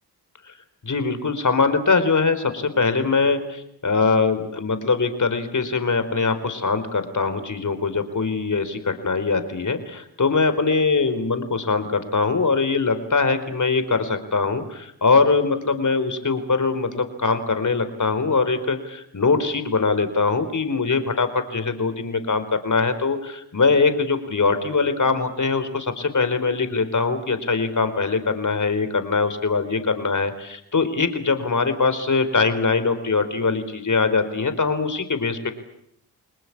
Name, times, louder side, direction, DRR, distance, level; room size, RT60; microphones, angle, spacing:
voice 1, 0.8-35.5, left 4 dB, 45° left, 10 dB, 4.4 m, -22 dB
29.0 x 20.0 x 8.7 m, 0.72 s
supercardioid pair, 50°, 43 cm